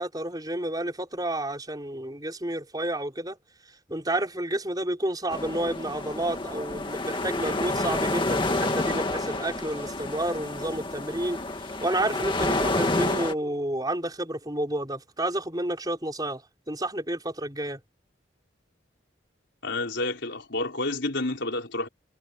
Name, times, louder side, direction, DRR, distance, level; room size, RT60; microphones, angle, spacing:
voice 1, 0.0-3.4 3.9-17.8, right 1 dB, 20° right, 5.7 m, -30 dB
sound 1, 5.3-13.3, left 2 dB, 25° left, 2.2 m, -29 dB
voice 2, 19.6-21.9, left 2 dB, 65° left, 4.4 m, -29 dB
head